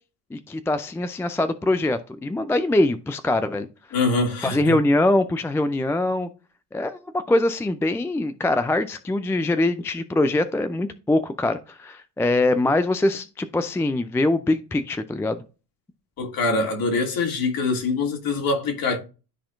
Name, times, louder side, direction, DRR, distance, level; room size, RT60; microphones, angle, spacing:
voice 1, 0.3-3.7 4.4-6.3 6.7-15.4, left 2 dB, 5° left, 0.4 m, -23 dB
voice 2, 3.9-4.8 16.2-19.0, left 3 dB, 45° left, 2.6 m, -24 dB
12.5 x 4.2 x 2.5 m
hypercardioid pair, 70°, 47 cm